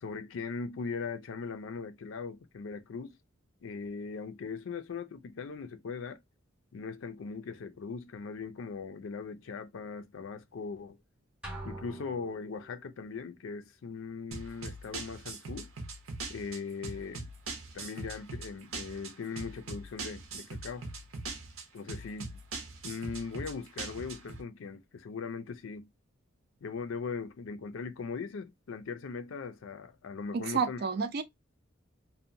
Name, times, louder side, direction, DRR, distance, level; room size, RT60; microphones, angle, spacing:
voice 1, 0.0-3.1 3.6-6.2 6.7-11.0 11.6-15.7 16.3-17.3 17.7-20.9 21.7-22.3 22.8-25.9 26.6-30.8, left 5 dB, 70° left, 0.4 m, -39 dB
sound 1, 11.4-12.9, right 2 dB, 5° right, 0.7 m, -44 dB
sound 2, 14.3-24.4, right 3 dB, 85° right, 0.7 m, -41 dB
voice 2, 30.3-31.2, right 5 dB, 50° right, 0.4 m, -30 dB
2.7 x 2.1 x 2.5 m
head